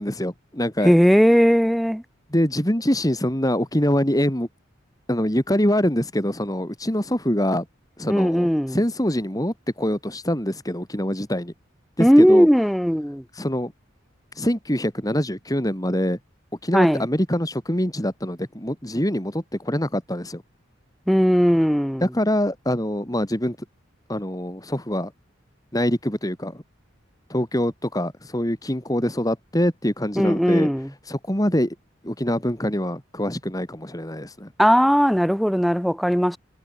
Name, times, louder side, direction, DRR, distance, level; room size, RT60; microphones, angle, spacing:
voice 1, 0.0-0.9 2.3-4.5 5.1-7.7 8.0-11.5 12.0-12.5 13.4-13.7 14.4-16.2 16.6-20.4 22.0-23.6 24.1-25.1 25.7-26.6 27.3-30.7 31.1-31.8 32.0-34.5, equal, 20° left, 3.6 m, -24 dB
voice 2, 0.8-2.0 8.1-8.8 12.0-13.2 16.7-17.0 21.1-22.1 30.1-30.9 34.6-36.4, equal, ahead, 3.2 m, -17 dB
head